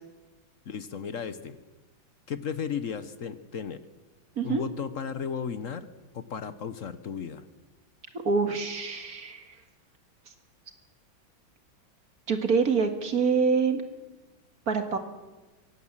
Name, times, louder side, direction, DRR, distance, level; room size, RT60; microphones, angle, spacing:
voice 1, 0.7-1.6 2.3-3.8 4.4-5.9 6.1-7.5, left 7 dB, 50° left, 12 dB, 1.0 m, -34 dB
voice 2, 8.2-9.4 12.3-13.8 14.7-15.0, right 5 dB, 45° right, 7 dB, 2.1 m, -25 dB
24.0 x 17.5 x 7.3 m, 1.2 s
omnidirectional pair, 2.2 m